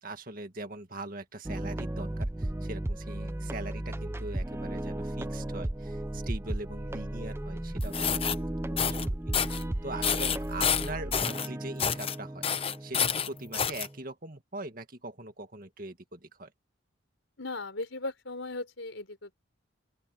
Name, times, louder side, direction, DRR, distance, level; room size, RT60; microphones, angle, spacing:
voice 1, 0.0-8.4 8.7-9.2 9.4-16.5, right 2 dB, 45° right, 2.0 m, -42 dB
sound 1, 1.4-14.0, right 1 dB, 10° right, 0.5 m, -35 dB
sound 2, 7.8-8.4 8.8-9.1 9.3-9.6 10.0-11.5 11.8-12.2 12.4-13.9, left 8 dB, 25° left, 0.8 m, -28 dB
voice 2, 17.4-19.3, left 2 dB, 70° left, 4.2 m, -37 dB
open air
head